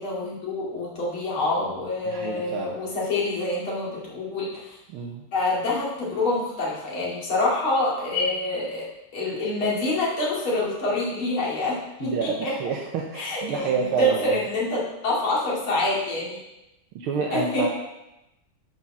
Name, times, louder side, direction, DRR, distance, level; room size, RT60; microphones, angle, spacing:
voice 1, 0.0-4.8 5.3-8.9 9.1-12.5 13.1-16.4 17.3-17.7, left 2 dB, 70° left, -6 dB, 3.3 m, -26 dB
voice 2, 2.1-2.8 4.9-5.2 12.0-14.4 17.0-17.7, right 6 dB, 75° right, 0 dB, 1.7 m, -28 dB
8.2 x 5.7 x 6.0 m, 0.93 s
omnidirectional pair, 2.4 m